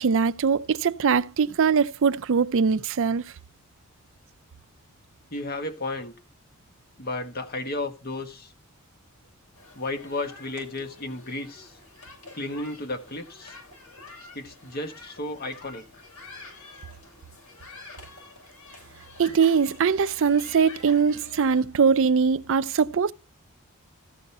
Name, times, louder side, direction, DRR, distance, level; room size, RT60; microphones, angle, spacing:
voice 1, 0.0-3.2 19.2-23.1, right 6 dB, 60° right, 0.5 m, -22 dB
voice 2, 5.3-6.1 7.0-8.5 9.7-11.7 12.3-13.5 14.3-15.8, left 2 dB, 45° left, 1.5 m, -33 dB
sound 1, 9.6-21.6, left 3 dB, 90° left, 7.0 m, -47 dB
14.5 x 5.4 x 5.6 m
head